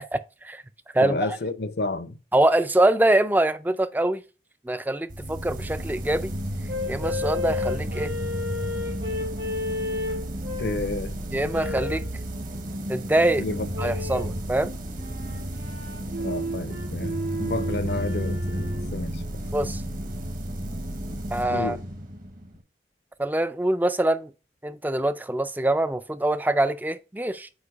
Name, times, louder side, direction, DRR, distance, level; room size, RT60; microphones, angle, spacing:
voice 1, 1.0-2.2 10.6-11.2 13.4-13.7 16.2-19.2 21.5-21.8, left 2 dB, 70° left, 0.7 m, -30 dB
voice 2, 2.3-4.2 4.7-6.3 6.9-8.1 11.3-12.0 12.9-13.4 13.8-14.7 19.5-19.8 21.3-21.8 23.2-24.3 24.6-27.5, right 1 dB, 10° right, 0.4 m, -24 dB
sound 1, 5.1-22.6, equal, 50° right, 1.0 m, -32 dB
sound 2, 6.7-10.9 11.5-12.1 13.7-14.4 14.9-18.9, left 2 dB, 85° right, 1.9 m, -33 dB
8.1 x 2.7 x 4.9 m
head